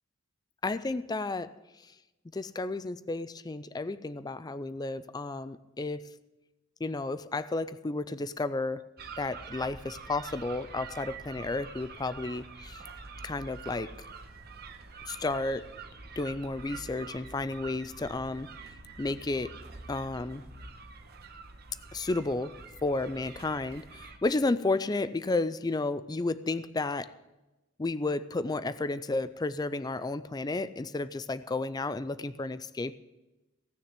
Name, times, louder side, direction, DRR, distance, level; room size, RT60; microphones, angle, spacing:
voice 1, 0.6-1.5 2.3-6.1 6.8-8.8 9.2-12.8 13.2-13.9 15.1-15.7 16.2-18.5 19.0-19.5 19.9-20.4 21.9-27.1 27.8-33.0, left 2 dB, 20° left, 15 dB, 0.4 m, -32 dB
sound 1, 9.0-24.2, right 4 dB, 50° right, 1.2 m, -46 dB
17.5 x 6.6 x 8.1 m, 1.1 s
head